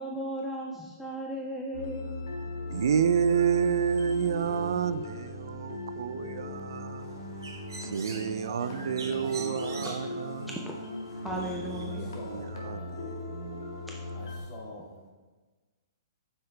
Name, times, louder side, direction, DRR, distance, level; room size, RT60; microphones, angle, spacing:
voice 1, 0.0-2.4 8.4-10.2 10.7-10.8 11.2-12.1, right 1 dB, ahead, 0.5 m, -38 dB
sound 1, 1.7-14.4, left 2 dB, 80° left, 1.5 m, -38 dB
voice 2, 2.7-7.4 7.8-10.5 11.4-13.7, right 7 dB, 70° right, 0.3 m, -30 dB
Bird, 7.0-12.4, right 3 dB, 90° right, 1.4 m, -46 dB
voice 3, 7.9-9.7 11.9-13.1 14.1-15.0, left 1 dB, 40° left, 2.0 m, -46 dB
7.6 x 5.6 x 3.3 m
hypercardioid pair, 150°, 2 cm